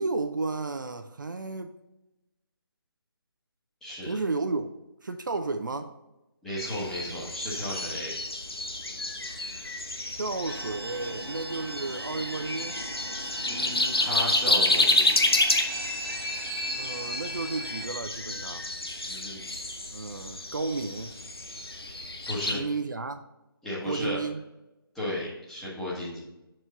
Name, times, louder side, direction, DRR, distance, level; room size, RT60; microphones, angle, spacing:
voice 1, 0.0-1.7 4.1-4.7 5.0-5.9 10.2-12.8 16.8-18.7 19.9-21.1 22.5-23.2 23.8-24.4, right 3 dB, 55° right, 8 dB, 0.5 m, -32 dB
voice 2, 3.8-4.2 6.4-8.1 13.4-15.1 19.0-19.4 22.3-22.6 23.6-24.2 24.9-26.2, left 1 dB, 5° left, -7 dB, 1.2 m, -34 dB
sound 1, 6.6-22.6, left 2 dB, 80° left, 0.9 m, -30 dB
sound 2, 10.5-17.9, equal, 80° right, 1.2 m, -37 dB
6.2 x 4.6 x 3.9 m, 0.96 s
figure-of-eight pair, 155°, 13 cm